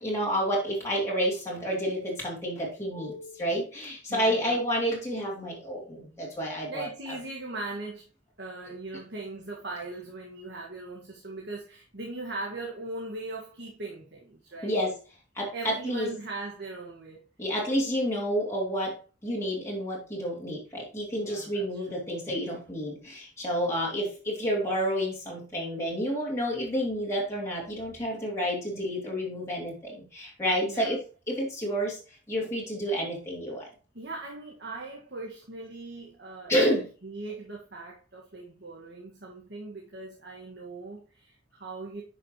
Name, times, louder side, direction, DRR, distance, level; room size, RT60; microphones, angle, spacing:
voice 1, 0.0-6.9 14.6-15.0 15.3-16.1 17.4-19.0 19.2-33.7 36.5-36.9, equal, 15° left, 2.6 m, -30 dB
voice 2, 4.1-4.6 6.7-8.1 8.4-14.8 15.5-17.3 21.1-22.0 23.7-23.9 27.6-27.7 30.6-31.0 33.9-36.6 37.0-42.0, right 2 dB, 60° right, 1.7 m, -40 dB
10.0 x 6.0 x 3.0 m
head